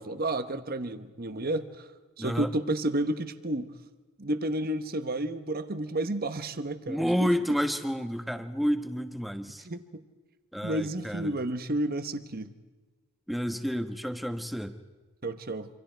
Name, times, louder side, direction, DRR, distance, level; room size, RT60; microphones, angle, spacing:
voice 1, 0.0-1.9 2.2-3.7 4.2-7.3 9.6-10.0 10.6-12.5 15.2-15.7, right 1 dB, 40° right, 10 dB, 1.1 m, -31 dB
voice 2, 2.2-2.5 6.9-9.6 10.5-11.3 13.3-14.8, equal, ahead, 7 dB, 1.1 m, -30 dB
27.0 x 26.5 x 4.6 m, 1.3 s
head